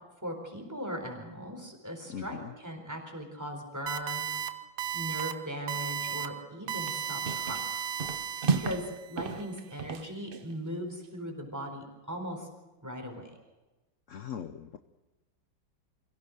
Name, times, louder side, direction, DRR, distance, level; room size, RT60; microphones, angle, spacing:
voice 1, 0.2-4.5 4.9-7.6 8.4-8.8 9.1-12.5 12.8-13.4, equal, 10° right, 2 dB, 4.1 m, -39 dB
voice 2, 2.1-2.5 14.1-14.8, left 8 dB, 60° left, 9 dB, 0.8 m, -40 dB
sound 1, 3.9-4.5 4.8-5.3 5.7-6.3 6.7-9.0, right 9 dB, 80° right, 1.9 m, -34 dB
sound 2, 6.7-6.9 7.2-7.7 8.0-8.9 9.2-10.5, right 5 dB, 45° right, 0.7 m, -33 dB
25.0 x 16.5 x 6.5 m, 1.1 s
omnidirectional pair, 2.2 m